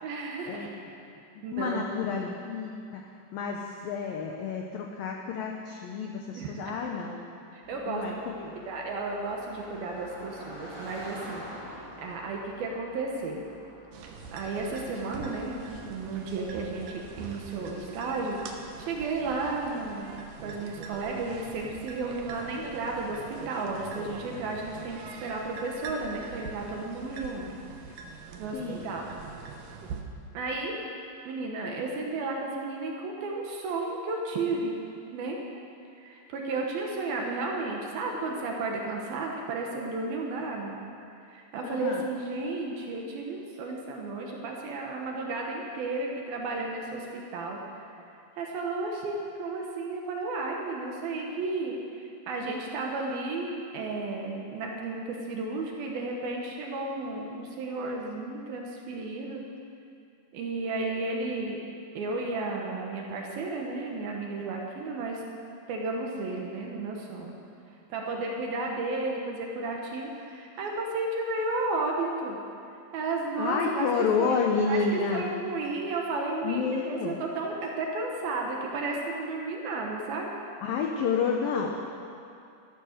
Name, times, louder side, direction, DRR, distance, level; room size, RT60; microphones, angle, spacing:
voice 1, 0.0-0.7 1.4-2.0 6.3-6.7 7.5-13.5 14.3-18.4 18.8-20.1 20.4-27.5 28.4-29.1 30.3-30.8 31.2-34.8 35.1-35.4 36.0-40.8 41.3-47.9 48.4-59.4 60.3-61.6 61.9-65.2 65.7-67.3 67.9-72.4 72.9-74.3 74.7-80.3, right 3 dB, 65° right, 0 dB, 2.6 m, -33 dB
voice 2, 1.5-3.0 3.3-7.2 7.9-8.1 8.4-8.5 28.5-28.8 41.6-42.0 73.4-75.2 76.4-77.2 80.6-81.8, left 5 dB, 85° left, 1 dB, 2.0 m, -29 dB
Car passing by, 7.6-18.8, equal, 5° left, 3.0 m, -48 dB
sound 1, 13.9-30.0, right 4 dB, 85° right, 1.9 m, -43 dB
13.5 x 12.5 x 6.6 m, 2.6 s
omnidirectional pair, 5.3 m